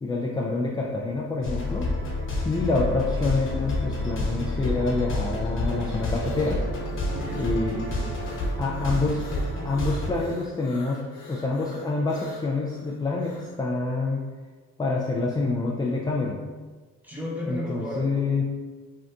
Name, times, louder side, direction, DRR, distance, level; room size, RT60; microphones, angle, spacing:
voice 1, 0.0-1.9 2.4-6.6 7.4-7.8 8.6-9.3 9.6-14.2 14.8-16.4 17.5-18.6, left 3 dB, 15° left, -3 dB, 0.3 m, -27 dB
sound 1, 1.4-10.1, left 1 dB, 40° left, 0.9 m, -29 dB
sound 2, 5.9-13.6, left 2 dB, 85° left, 0.8 m, -45 dB
voice 2, 7.0-8.1 17.0-18.2, left 1 dB, 5° right, -5 dB, 0.9 m, -34 dB
2.7 x 2.5 x 3.4 m, 1.4 s
cardioid pair, 90°, 30 cm